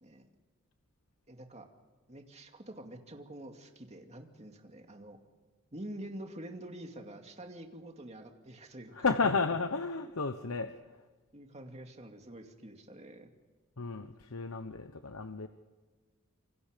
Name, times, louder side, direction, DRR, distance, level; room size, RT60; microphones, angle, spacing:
voice 1, 1.3-1.7 2.1-5.2 5.7-9.1 11.3-13.3, right 1 dB, 30° right, 3 dB, 2.4 m, -47 dB
voice 2, 8.9-10.8 13.8-15.5, left 4 dB, 90° left, 8 dB, 1.0 m, -32 dB
27.5 x 25.0 x 5.2 m, 1.3 s
head